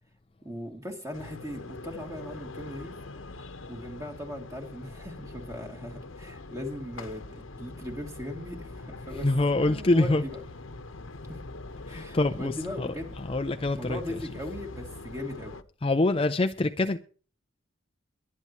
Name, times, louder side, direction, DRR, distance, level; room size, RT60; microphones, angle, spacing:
voice 1, 0.4-2.9 3.7-9.3 9.5-10.4 11.3-11.4 11.9-13.2 13.7-15.6, left 1 dB, 15° right, 2.8 m, -38 dB
sound 1, 1.1-15.6, left 2 dB, 70° left, 1.0 m, -43 dB
voice 2, 9.2-10.2 11.9-12.9 13.2-14.0 15.8-17.0, left 2 dB, 25° left, 0.5 m, -25 dB
23.0 x 9.6 x 3.1 m
head